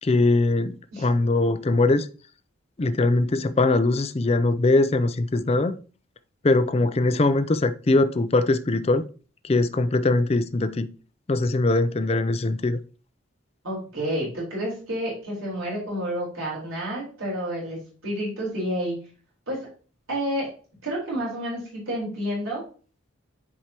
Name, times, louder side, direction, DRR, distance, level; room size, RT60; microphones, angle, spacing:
voice 1, 0.0-2.1 2.8-5.8 6.4-9.0 9.4-10.9 11.3-12.8, left 2 dB, 30° left, 0.4 m, -21 dB
voice 2, 13.6-17.8 18.0-19.0 19.5-19.7 20.1-20.5 20.8-22.6, equal, 85° right, 4.2 m, -29 dB
10.0 x 4.8 x 2.9 m
head